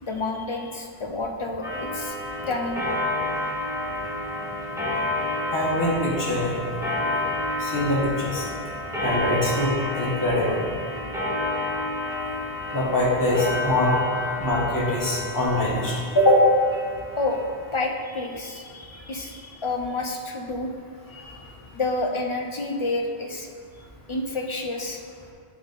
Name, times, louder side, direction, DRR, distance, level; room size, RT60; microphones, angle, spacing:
voice 1, 0.0-2.8 17.2-17.4 17.7-20.7 21.7-23.5 24.1-25.0, left 2 dB, 50° left, 2 dB, 0.3 m, -29 dB
Clock, 1.6-17.7, left 2 dB, 5° right, 1.3 m, -30 dB
voice 2, 5.5-6.6 7.6-8.4 9.0-10.6 12.7-13.9 14.4-16.4 21.2-21.3, left 1 dB, 20° left, -6 dB, 1.2 m, -23 dB
8.7 x 3.5 x 4.0 m, 2.2 s
omnidirectional pair, 1.1 m